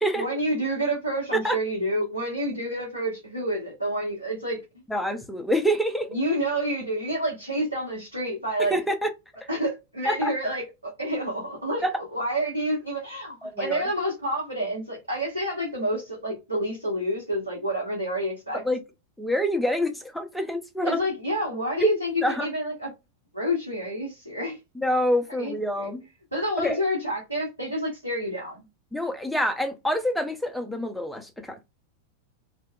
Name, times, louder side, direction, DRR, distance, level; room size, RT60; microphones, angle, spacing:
voice 1, 0.1-4.6 6.1-8.8 9.5-11.8 12.1-18.6 20.8-22.9 23.3-24.6 25.4-25.9 26.3-28.6, equal, 85° right, 0.8 m, -28 dB
voice 2, 4.9-6.1 8.7-9.1 10.0-10.3 11.8-11.9 13.4-13.8 18.6-18.8 19.2-21.0 21.8-21.9 22.2-22.5 24.8-26.0 26.6-26.8 28.9-31.6, equal, ahead, 0.5 m, -26 dB
2.7 x 2.1 x 2.3 m
figure-of-eight pair, 90°, 0 cm